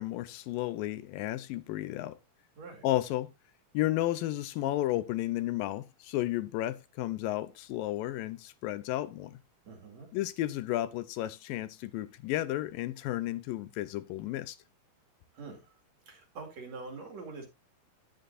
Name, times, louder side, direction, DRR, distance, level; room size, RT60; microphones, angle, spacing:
voice 1, 0.0-2.2 2.8-3.3 3.7-9.4 10.1-14.6, left 15 dB, 85° left, 2.4 m, -33 dB
voice 2, 9.6-10.1 15.3-15.7 16.1-17.5, right 4 dB, 50° right, 3.3 m, -44 dB
10.5 x 9.9 x 2.6 m
omnidirectional pair, 4.0 m